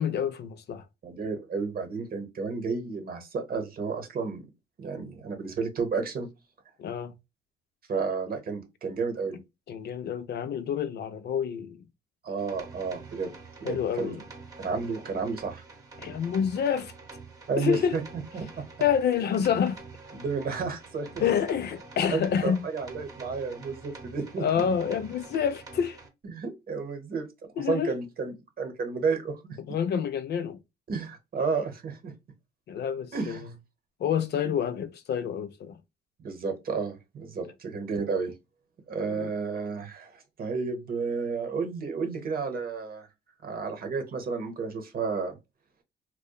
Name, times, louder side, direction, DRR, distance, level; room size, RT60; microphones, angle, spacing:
voice 1, 0.0-0.8 6.8-7.1 9.7-11.8 13.6-14.2 16.0-16.9 17.6-18.0 18.8-19.8 21.2-22.6 24.4-26.0 27.6-27.9 29.7-30.6 32.7-33.4 34.0-35.8 39.1-39.3, left 8 dB, 55° left, 0.4 m, -28 dB
voice 2, 1.0-4.5 4.8-6.3 7.9-9.4 12.2-13.3 13.6-14.2 14.6-15.6 17.5-18.0 18.3-18.6 20.1-21.1 22.1-24.6 26.2-27.3 27.7-29.6 30.9-32.1 33.1-33.5 36.2-38.3 38.9-43.1 43.4-45.4, right 5 dB, 50° right, 0.8 m, -32 dB
sound 1, 12.4-26.1, right 4 dB, 15° right, 0.9 m, -46 dB
2.8 x 2.1 x 2.2 m
cardioid pair, 90°, 20 cm